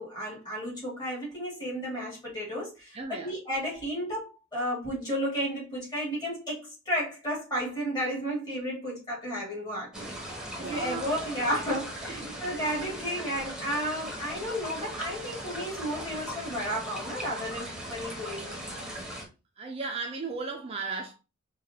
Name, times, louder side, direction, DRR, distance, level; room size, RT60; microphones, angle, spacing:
voice 1, 0.0-10.1 10.6-18.6, equal, 20° left, 2.0 m, -33 dB
voice 2, 2.9-3.3 10.5-11.3 12.1-12.4 19.6-21.1, right 4 dB, 30° right, 0.4 m, -36 dB
sound 1, 9.9-19.2, equal, 5° right, 0.9 m, -39 dB
4.8 x 2.2 x 2.7 m
head